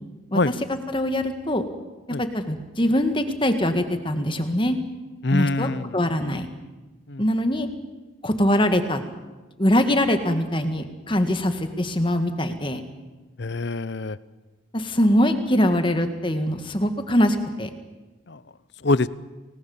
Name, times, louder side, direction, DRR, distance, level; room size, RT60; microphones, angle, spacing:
voice 1, 0.7-1.6 2.2-4.8 5.3-6.5 7.2-7.7 8.2-9.0 9.6-12.8 14.7-17.7, left 1 dB, 25° left, 8 dB, 1.8 m, -22 dB
voice 2, 5.2-6.0 7.1-7.2 13.4-14.2 18.3-18.4 18.8-19.1, left 2 dB, 55° left, 17 dB, 0.7 m, -24 dB
29.0 x 19.0 x 7.2 m, 1.2 s
head